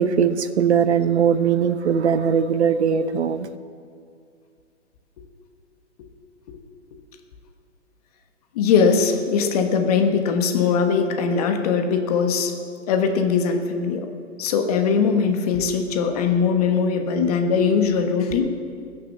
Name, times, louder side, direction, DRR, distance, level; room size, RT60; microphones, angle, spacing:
voice 1, 0.0-3.5, right 7 dB, 65° right, 12 dB, 0.8 m, -20 dB
voice 2, 8.5-12.5 12.9-14.1 14.4-18.5, left 5 dB, 30° left, 5 dB, 1.2 m, -21 dB
20.0 x 6.7 x 7.1 m, 2.3 s
hypercardioid pair, 145°, 36 cm